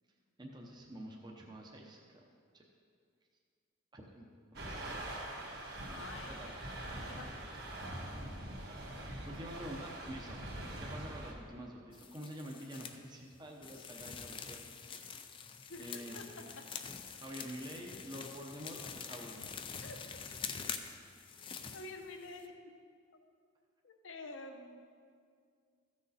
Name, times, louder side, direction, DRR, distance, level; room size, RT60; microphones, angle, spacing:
voice 1, 0.4-2.2 2.5-2.6 3.9-5.0 5.9-6.5 9.3-10.4 10.8-14.6 15.8-16.2 17.2-19.5, equal, 20° right, 0 dB, 0.8 m, -47 dB
sound 1, 4.5-11.3, right 1 dB, 50° right, 1.4 m, -43 dB
voice 2, 5.8-6.7 6.9-7.3 13.7-13.9 15.7-16.2 19.8-20.0 21.7-22.5 23.8-24.8, left 2 dB, 70° left, 4 dB, 0.9 m, -48 dB
sound 2, 11.9-13.0 13.6-22.5, left 6 dB, 25° left, 0.4 m, -46 dB
14.5 x 6.4 x 4.2 m, 2.2 s
head